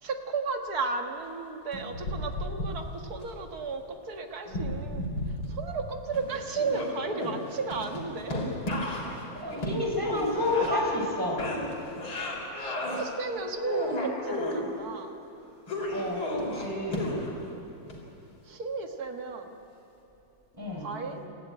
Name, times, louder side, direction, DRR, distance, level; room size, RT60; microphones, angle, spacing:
voice 1, 0.0-5.0 5.5-8.5 12.6-15.2 18.5-19.5 20.8-21.2, right 4 dB, 50° right, 5 dB, 1.9 m, -34 dB
sound 1, 1.7-3.2 4.5-5.9 6.1-11.1 11.4-13.0 13.4-14.6 15.7-17.4 17.9-18.0, left 1 dB, 75° left, 4.6 m, -33 dB
voice 2, 9.3-11.4 15.9-17.1 20.5-20.9, left 1 dB, 10° right, -1 dB, 4.2 m, -30 dB
27.0 x 14.0 x 9.7 m, 2.9 s
omnidirectional pair, 2.3 m